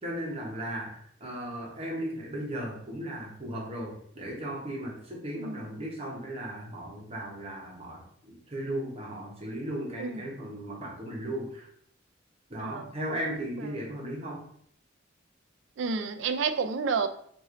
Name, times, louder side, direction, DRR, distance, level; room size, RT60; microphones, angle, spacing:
voice 1, 0.0-11.7 12.5-14.4, right 1 dB, 30° right, -3 dB, 1.0 m, -36 dB
voice 2, 5.4-5.8 10.0-10.3 12.6-12.9 13.6-13.8 15.8-17.1, right 5 dB, 65° right, 10 dB, 0.4 m, -31 dB
3.1 x 2.6 x 3.8 m, 0.64 s
head